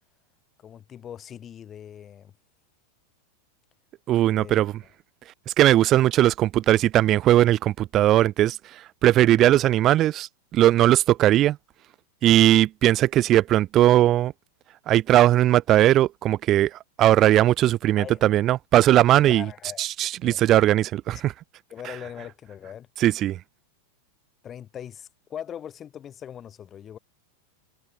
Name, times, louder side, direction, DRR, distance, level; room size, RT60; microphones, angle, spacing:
voice 1, 0.6-2.3 4.3-4.6 9.2-9.6 18.0-18.2 19.3-19.8 20.2-20.4 21.1-21.2 21.7-22.9 24.4-27.0, left 9 dB, 25° left, 6.6 m, -40 dB
voice 2, 4.1-4.8 5.5-11.6 12.2-14.3 14.9-19.5 19.8-21.3 23.0-23.4, right 13 dB, 35° right, 0.5 m, -19 dB
figure-of-eight pair, 90°, 0 cm